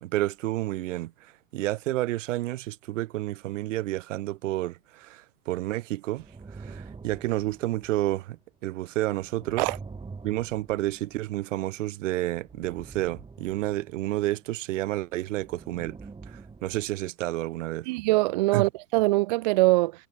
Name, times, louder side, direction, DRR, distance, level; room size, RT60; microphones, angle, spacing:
voice 1, 0.0-6.3 6.5-9.7 10.2-16.0 16.3-17.9 18.5-18.7, right 16 dB, 55° right, 1.2 m, -30 dB
sound 1, 6.2-8.4 9.1-11.7 12.3-14.5 15.0-17.1, right 4 dB, 10° right, 4.5 m, -46 dB
voice 2, 17.9-19.9, right 21 dB, 35° right, 0.4 m, -22 dB
figure-of-eight pair, 100°, 45 cm